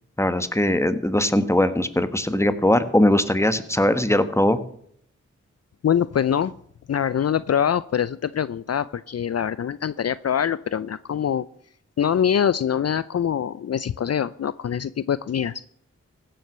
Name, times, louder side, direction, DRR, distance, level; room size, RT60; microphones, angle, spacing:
voice 1, 0.2-4.6, left 1 dB, 10° left, 11 dB, 1.4 m, -20 dB
voice 2, 5.8-6.5 6.9-11.5 12.0-15.6, left 8 dB, 55° left, 17 dB, 0.5 m, -24 dB
15.5 x 7.8 x 6.6 m, 0.65 s
cardioid pair, 40°, 30 cm